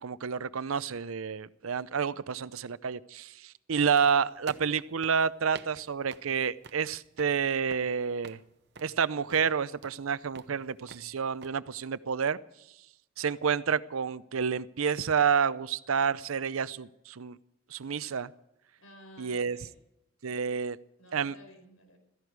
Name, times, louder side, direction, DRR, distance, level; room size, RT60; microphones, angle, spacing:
voice 1, 0.0-8.4 8.8-12.4 13.2-17.4 17.7-18.3 19.2-19.6 20.2-20.8 21.1-21.3, right 6 dB, 80° right, 17 dB, 0.6 m, -29 dB
voice 2, 2.1-2.5 18.8-19.8 21.0-22.0, left 1 dB, 80° left, 4 dB, 5.1 m, -54 dB
sound 1, 3.9-11.5, right 4 dB, 50° right, 0.8 m, -50 dB
16.5 x 15.0 x 4.7 m, 0.84 s
head